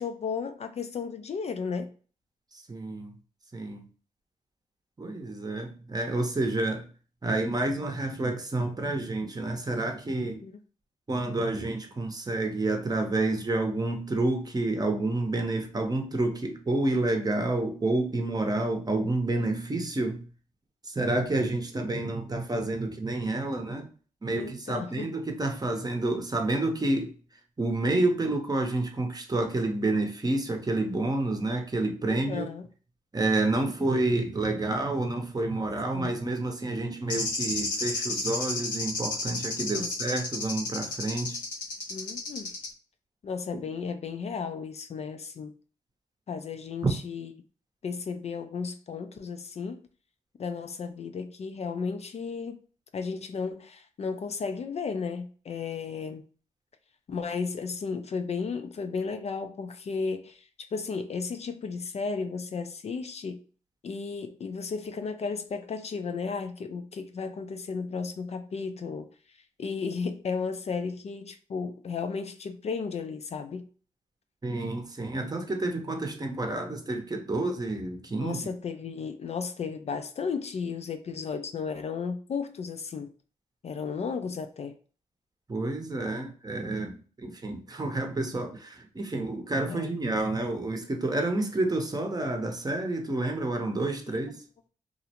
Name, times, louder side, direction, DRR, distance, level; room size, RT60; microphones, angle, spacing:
voice 1, 0.0-1.9 10.4-10.5 24.4-25.1 32.1-32.6 35.9-36.1 39.8-39.9 41.9-42.5 43.2-45.5 46.3-47.3 47.8-49.8 50.4-52.6 52.9-56.3 57.1-63.4 63.8-69.1 69.6-73.6 78.2-83.1 83.6-84.8 89.7-90.0 94.1-94.2, left 5 dB, 50° left, 0.4 m, -34 dB
voice 2, 2.5-3.1 3.5-3.8 5.0-6.9 7.2-10.4 11.1-20.3 20.8-23.9 24.2-27.1 27.6-32.5 33.1-41.4 43.5-43.7 46.8-46.9 74.4-78.5 85.5-94.4, right 2 dB, 30° right, 0.7 m, -29 dB
sound 1, 37.1-42.7, left 3 dB, 90° left, 0.8 m, -31 dB
2.5 x 2.0 x 2.8 m
cardioid pair, 50°, 14 cm